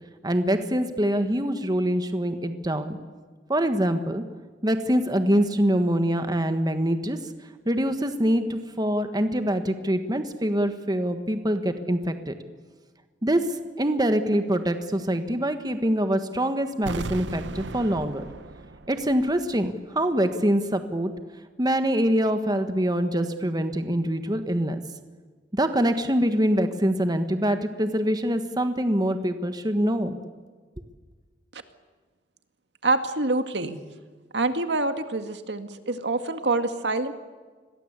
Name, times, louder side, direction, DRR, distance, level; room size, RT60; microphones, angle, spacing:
voice 1, 0.2-3.0 3.5-4.2 4.6-7.2 7.6-12.3 13.2-13.4 13.8-18.2 18.9-21.1 21.6-24.8 25.5-30.2, equal, 20° right, 8 dB, 1.5 m, -24 dB
sound 1, 16.8-19.7 20.0-20.1, right 3 dB, 90° right, 0.9 m, -37 dB
voice 2, 32.8-33.8 34.3-37.1, right 2 dB, 70° right, 8 dB, 2.0 m, -26 dB
29.0 x 22.0 x 8.3 m, 1.5 s
head